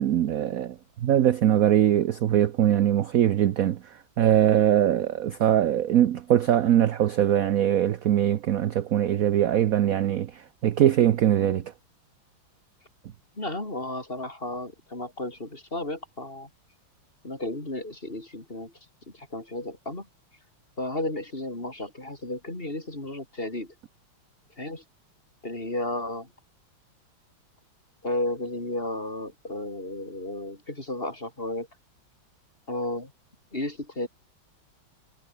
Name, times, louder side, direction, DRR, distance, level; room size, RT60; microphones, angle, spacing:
voice 1, 0.0-3.8 4.2-11.6, right 11 dB, 60° right, 0.9 m, -22 dB
voice 2, 13.3-16.5 17.2-18.7 19.1-20.1 20.8-23.7 24.6-24.8 25.4-26.3 28.0-31.7 32.7-33.1 33.5-34.1, left 1 dB, 25° left, 4.9 m, -33 dB
omnidirectional pair, 2.3 m